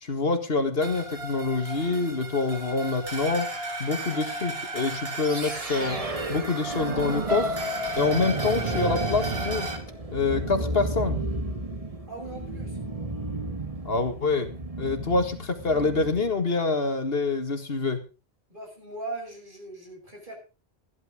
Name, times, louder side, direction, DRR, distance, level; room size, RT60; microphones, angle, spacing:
voice 1, 0.0-3.5 3.8-6.0 6.3-7.6 8.0-9.7 10.1-11.2 13.8-14.5 14.8-18.0, left 3 dB, 65° left, 8 dB, 2.1 m, -26 dB
sound 1, 0.8-9.8, right 1 dB, 70° right, 2.6 m, -35 dB
sound 2, 5.2-16.3, right 2 dB, 35° right, 1.6 m, -33 dB
sound 3, 7.3-11.2 11.7-12.0 12.4-12.5, left 2 dB, 85° right, 2.1 m, -35 dB
voice 2, 12.1-12.8 18.5-20.3, right 2 dB, 50° right, 1 dB, 6.7 m, -39 dB
14.5 x 11.5 x 5.0 m, 0.32 s
omnidirectional pair, 1.1 m